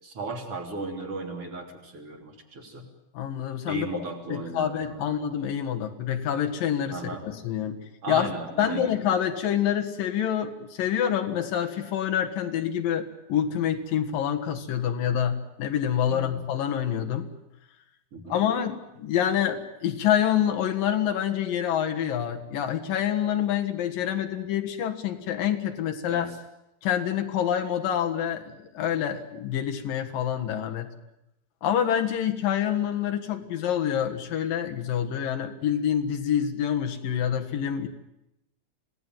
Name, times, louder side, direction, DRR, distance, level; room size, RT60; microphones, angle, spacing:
voice 1, 0.0-2.8 3.7-5.1 6.9-7.2 8.0-8.9 16.1-16.4 18.1-18.4 26.1-26.3, right 3 dB, 40° right, 2 dB, 4.0 m, -36 dB
voice 2, 3.1-3.9 4.3-7.0 7.3-7.8 8.1-8.3 8.6-17.3 18.3-26.3 26.8-30.9 31.6-37.9, left 9 dB, 70° left, 5 dB, 3.2 m, -27 dB
27.0 x 18.0 x 9.3 m, 0.87 s
omnidirectional pair, 4.3 m